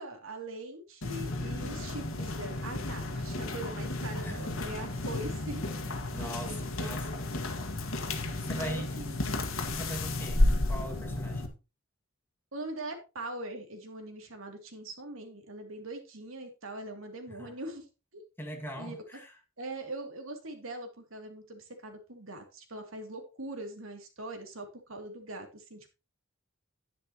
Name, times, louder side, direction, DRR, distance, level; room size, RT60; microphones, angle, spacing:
voice 1, 0.0-6.0 6.4-7.7 8.5-9.2 12.5-17.9 18.1-18.2 18.8-19.0 19.6-25.9, right 1 dB, 90° right, 2.7 m, -42 dB
sound 1, 1.0-11.5, left 2 dB, 85° left, 1.8 m, -32 dB
voice 2, 6.1-7.1 8.4-9.0 9.7-11.5 17.3-17.5 18.4-19.3, equal, 10° left, 2.0 m, -41 dB
10.5 x 10.0 x 3.0 m
head